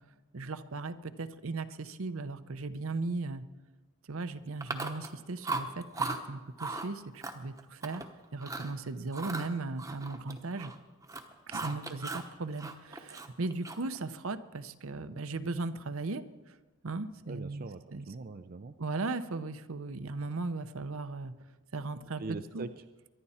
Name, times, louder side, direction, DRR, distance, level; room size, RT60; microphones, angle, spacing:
voice 1, 0.3-3.4 4.1-8.0 8.3-10.7 11.5-16.6 16.8-18.1 18.8-21.3 21.7-22.2 22.5-22.7, right 3 dB, 70° right, 11 dB, 0.7 m, -37 dB
Chewing mastication, 4.6-5.2 5.4-6.2 6.6-6.9 7.2-8.1 8.4-8.7 9.1-10.8 11.0-12.3 12.6-14.0, right 3 dB, 15° right, 0.9 m, -37 dB
voice 2, 17.3-18.8 22.2-22.8, right 3 dB, 40° right, 9 dB, 0.4 m, -42 dB
23.5 x 11.0 x 4.3 m, 1.2 s
head